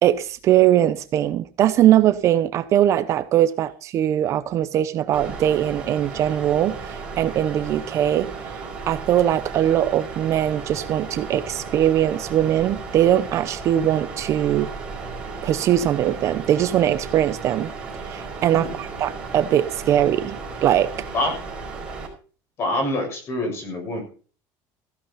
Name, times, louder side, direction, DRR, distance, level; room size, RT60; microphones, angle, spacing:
voice 1, 0.0-14.7 15.4-17.7 18.1-21.1, right 11 dB, 35° right, 0.7 m, -21 dB
sound 1, 5.1-22.1, right 4 dB, 10° right, 5.0 m, -35 dB
voice 2, 18.5-18.8 21.1-21.3 22.6-24.0, left 1 dB, 30° left, 7.0 m, -26 dB
15.5 x 11.5 x 4.1 m
cardioid pair, 175°, 8 cm